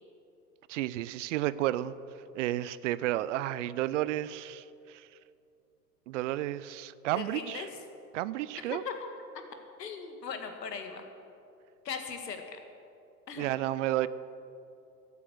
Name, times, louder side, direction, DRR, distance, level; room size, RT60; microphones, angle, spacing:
voice 1, 0.7-1.9 2.3-5.1 6.1-7.7 8.1-8.8 13.4-14.1, right 14 dB, 50° right, 17 dB, 0.5 m, -32 dB
voice 2, 7.2-7.7 8.6-9.1 9.8-11.0 11.8-12.6 13.3-13.5, left 6 dB, 85° left, 6 dB, 1.8 m, -39 dB
13.0 x 8.3 x 7.8 m, 2.7 s
hypercardioid pair, 110°, 48 cm